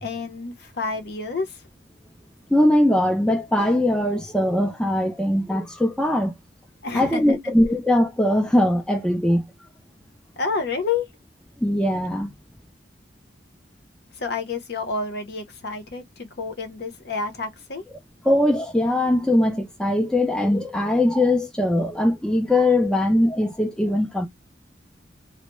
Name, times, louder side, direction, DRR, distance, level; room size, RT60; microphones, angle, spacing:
voice 1, 0.0-1.6 6.8-7.4 10.4-11.1 14.1-17.8, left 4 dB, 60° left, 0.7 m, -29 dB
voice 2, 2.5-6.3 6.9-9.5 11.6-12.3 18.3-24.3, left 1 dB, 5° left, 0.4 m, -21 dB
2.2 x 2.1 x 2.9 m
head